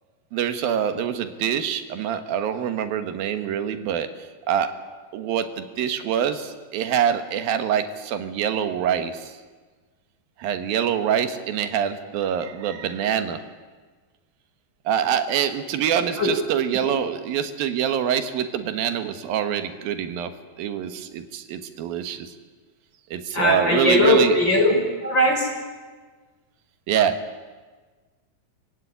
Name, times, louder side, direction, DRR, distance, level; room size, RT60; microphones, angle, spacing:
voice 1, 0.3-4.1 4.5-4.7 5.1-9.4 10.4-13.4 14.9-20.3 20.6-22.3 23.1-24.4 26.9-27.2, right 9 dB, 90° right, 8 dB, 3.2 m, -25 dB
voice 2, 23.3-24.7 25.0-25.5, left 1 dB, 30° left, 0 dB, 5.9 m, -19 dB
25.5 x 16.5 x 10.0 m, 1.4 s
omnidirectional pair, 4.0 m